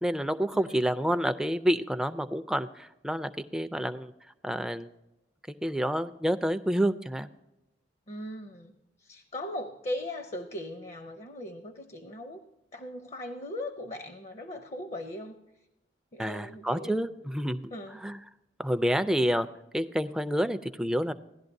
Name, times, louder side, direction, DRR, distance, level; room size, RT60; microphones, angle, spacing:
voice 1, 0.0-4.1 4.4-4.9 5.5-7.3 16.2-17.7 18.0-18.2 18.6-19.5 19.7-21.1, equal, 5° right, 9 dB, 0.4 m, -28 dB
voice 2, 8.1-8.7 9.0-12.4 12.7-15.4 16.1-17.0 17.7-18.0, left 1 dB, 40° left, 7 dB, 0.6 m, -39 dB
16.5 x 11.5 x 2.6 m, 0.97 s
head